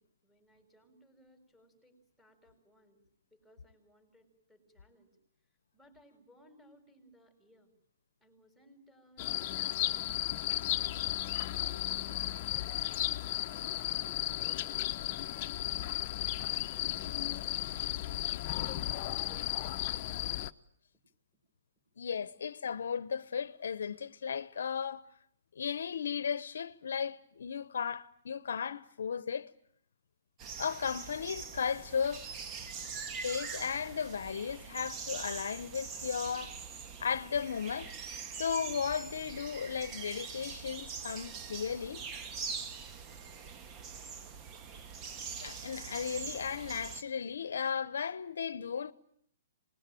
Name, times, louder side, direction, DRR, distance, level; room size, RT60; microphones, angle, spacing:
voice 1, 0.0-3.0 3.3-5.2 5.7-7.7 8.2-10.7 11.3-12.7 13.2-14.8 15.1-18.1 18.6-20.1, equal, 5° right, 6.6 m, -62 dB
sound 1, 9.2-20.5, left 14 dB, 40° left, 1.0 m, -34 dB
voice 2, 22.0-25.0 25.6-29.5 30.6-32.3 33.2-36.5 37.0-37.9 38.4-42.0 45.4-48.9, left 7 dB, 75° left, 1.0 m, -35 dB
sound 2, 30.4-47.0, right 6 dB, 30° right, 1.5 m, -43 dB
26.0 x 20.5 x 9.1 m
hypercardioid pair, 135°, 0 cm